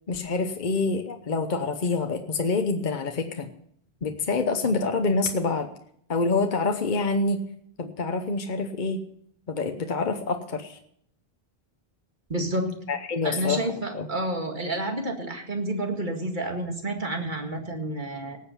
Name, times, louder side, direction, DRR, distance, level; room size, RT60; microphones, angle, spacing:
voice 1, 0.1-3.5 4.0-5.7 6.1-7.4 7.8-9.0 9.5-10.8 12.9-14.1, left 3 dB, 50° left, 6 dB, 1.0 m, -26 dB
voice 2, 12.3-12.7 13.2-18.4, right 1 dB, 50° right, 3 dB, 2.1 m, -29 dB
18.5 x 7.9 x 5.6 m, 0.68 s
omnidirectional pair, 1.0 m